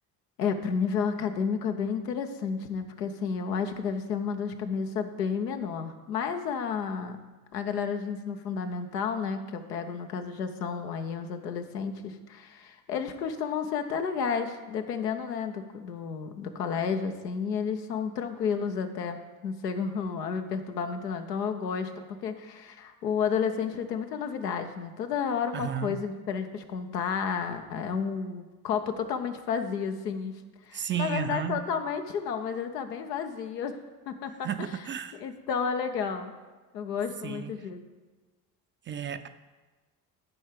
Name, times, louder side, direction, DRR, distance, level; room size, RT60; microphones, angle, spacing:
voice 1, 0.4-7.2 7.5-21.9 22.2-30.4 30.7-33.8 34.1-34.7 35.2-36.3 36.7-37.8, left 6 dB, 85° left, 6 dB, 0.7 m, -31 dB
voice 2, 25.5-26.1 30.7-31.6 34.4-35.2 37.2-37.5 38.9-39.3, right 8 dB, 25° right, 10 dB, 0.4 m, -33 dB
11.0 x 4.6 x 5.0 m, 1.3 s
hypercardioid pair, 50°, 48 cm